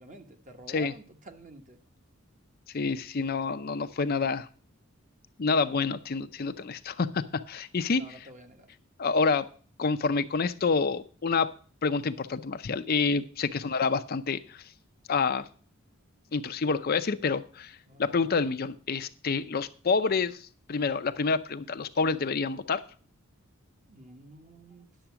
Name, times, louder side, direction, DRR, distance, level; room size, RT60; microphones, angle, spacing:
voice 1, 0.0-1.8 8.0-8.8 13.5-13.6 17.9-18.1 23.9-24.9, right 2 dB, 35° right, 1.2 m, -49 dB
voice 2, 2.7-4.5 5.4-8.0 9.0-9.5 9.8-11.5 11.8-14.7 15.1-15.5 16.3-22.8, left 4 dB, 45° left, 0.5 m, -28 dB
10.0 x 7.1 x 5.8 m
head